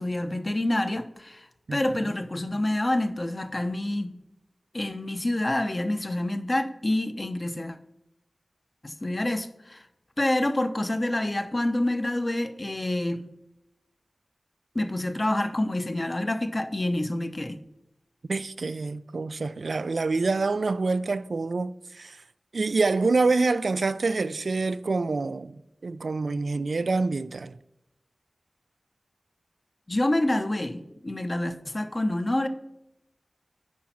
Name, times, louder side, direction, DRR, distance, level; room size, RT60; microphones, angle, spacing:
voice 1, 0.0-4.2 4.7-7.8 8.8-9.9 10.2-13.3 14.7-17.6 29.9-32.5, left 1 dB, 40° left, 0.9 m, -27 dB
voice 2, 1.7-2.0 18.3-22.2 22.5-27.6, right 3 dB, 80° right, 0.3 m, -26 dB
8.5 x 5.2 x 5.8 m
wide cardioid pair, 45°, 0 cm